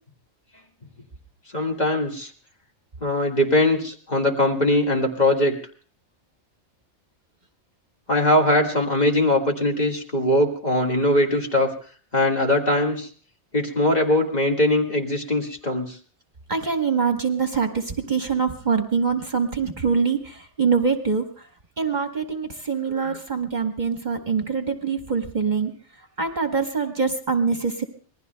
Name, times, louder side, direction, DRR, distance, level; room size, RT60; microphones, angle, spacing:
voice 1, 1.5-2.3 3.0-5.5 8.1-11.7 12.1-13.1 13.5-16.0 23.0-23.2, left 1 dB, 35° left, 1 dB, 1.9 m, -21 dB
voice 2, 16.5-21.3 21.8-25.7 26.2-27.8, right 5 dB, 40° right, 6 dB, 1.1 m, -24 dB
26.5 x 20.0 x 2.2 m, 0.43 s
omnidirectional pair, 1.2 m